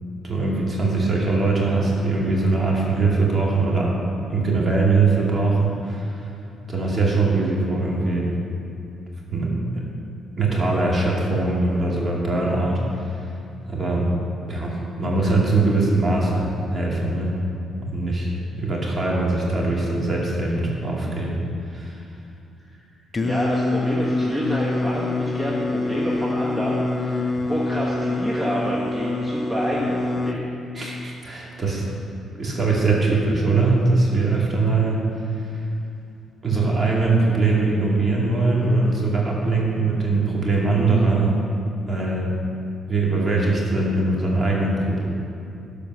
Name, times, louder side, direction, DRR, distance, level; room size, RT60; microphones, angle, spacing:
voice 1, 0.2-3.9 4.3-6.3 6.7-8.3 9.3-9.8 10.4-13.1 13.7-14.1 14.5-17.3 17.9-21.4 21.7-22.0 30.7-31.8 32.4-35.0 35.5-35.6 36.4-41.4 41.9-42.3 42.9-45.0, right 3 dB, 35° right, -3 dB, 2.5 m, -21 dB
Singing, 23.1-30.4, left 2 dB, 25° left, 0.6 m, -25 dB
voice 2, 23.2-30.4, equal, 15° right, -5 dB, 1.4 m, -28 dB
13.0 x 5.0 x 6.2 m, 2.6 s
cardioid pair, 90°, 0 cm